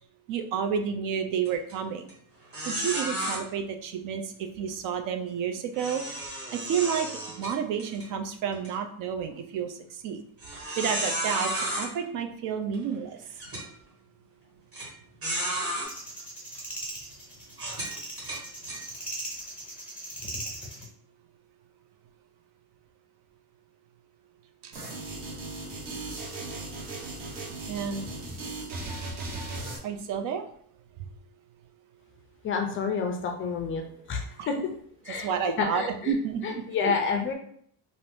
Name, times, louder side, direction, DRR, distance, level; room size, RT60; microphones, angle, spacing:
voice 1, 0.3-2.1 2.7-6.0 6.5-9.8 10.0-10.2 10.8-13.2 24.6-24.7 27.7-28.1 29.8-30.4 34.4-34.5 35.1-36.4 36.8-36.9, right 7 dB, 55° right, 6 dB, 0.4 m, -30 dB
sound 1, 1.4-1.7 2.1-2.2 2.5-3.4 5.7-8.1 8.5-8.7 9.3-9.4 10.4-11.9 12.7-12.8 13.4-13.6 14.7-14.9 15.2-15.9 16.5-16.7 17.5-18.8, right 1 dB, 35° right, 1.5 m, -32 dB
sound 2, 15.8-20.9, right 1 dB, 5° right, 0.8 m, -39 dB
sound 3, 24.7-29.8, right 2 dB, 90° right, 1.0 m, -37 dB
voice 2, 32.4-33.8 34.1-34.6 35.0-35.3 35.6-36.1 36.4-37.3, left 5 dB, 30° left, 3 dB, 0.4 m, -29 dB
2.6 x 2.5 x 3.4 m, 0.62 s
cardioid pair, 145°, 41 cm